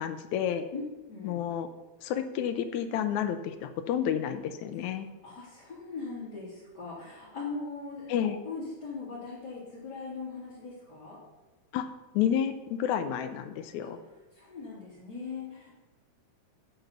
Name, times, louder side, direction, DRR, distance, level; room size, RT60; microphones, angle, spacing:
voice 1, 0.0-0.6 1.2-1.7 2.0-5.1 8.1-8.4 11.7-11.9 12.1-14.0, left 9 dB, 80° left, 9 dB, 2.0 m, -30 dB
voice 2, 0.7-1.4 5.2-11.2 13.8-13.9 14.3-15.8, left 4 dB, 35° left, -10 dB, 3.7 m, -40 dB
10.0 x 8.2 x 5.3 m, 1.2 s
omnidirectional pair, 3.4 m